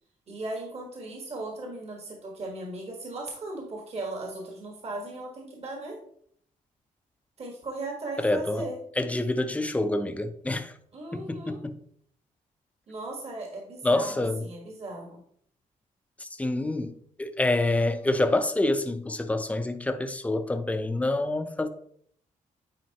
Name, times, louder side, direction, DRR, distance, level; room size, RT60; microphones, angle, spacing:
voice 1, 0.3-6.0 7.4-8.8 10.9-11.6 12.9-15.2, right 2 dB, 45° right, 1.5 m, -37 dB
voice 2, 8.2-8.7 9.0-10.8 11.1-11.8 13.8-14.5 16.2-21.7, left 2 dB, 10° left, 0.5 m, -27 dB
9.3 x 4.2 x 2.9 m
cardioid pair, 115°, 14 cm